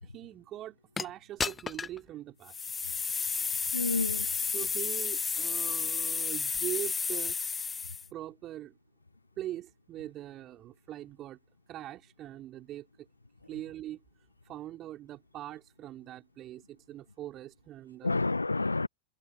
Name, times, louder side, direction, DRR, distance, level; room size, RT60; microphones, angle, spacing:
voice 1, 0.0-2.5 4.5-7.4 8.1-8.8 9.4-11.4 11.7-13.1 13.5-14.0 14.4-18.2, right 13 dB, 30° right, 4.0 m, -42 dB
sound 1, 1.0-1.1 1.4-2.0 2.5-8.1, left 5 dB, 15° left, 0.6 m, -32 dB
voice 2, 3.7-4.5 18.0-18.9, left 3 dB, 80° left, 0.9 m, -30 dB
figure-of-eight pair, 90°, 0 cm